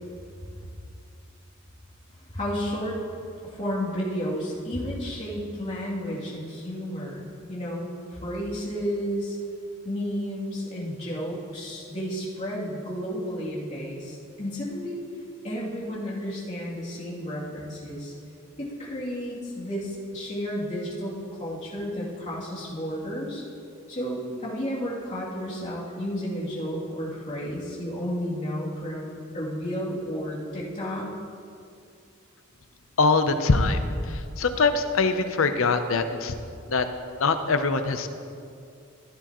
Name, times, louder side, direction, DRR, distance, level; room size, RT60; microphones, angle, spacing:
voice 1, 2.3-3.0 3.4-9.4 9.8-15.0 15.4-18.1 18.6-21.1 21.4-23.4 23.9-31.1, equal, 35° left, -8 dB, 2.9 m, -32 dB
voice 2, 33.0-33.8 34.1-36.3 36.7-36.9 37.2-38.1, left 4 dB, 75° left, 9 dB, 0.7 m, -23 dB
15.5 x 10.5 x 3.0 m, 2.5 s
head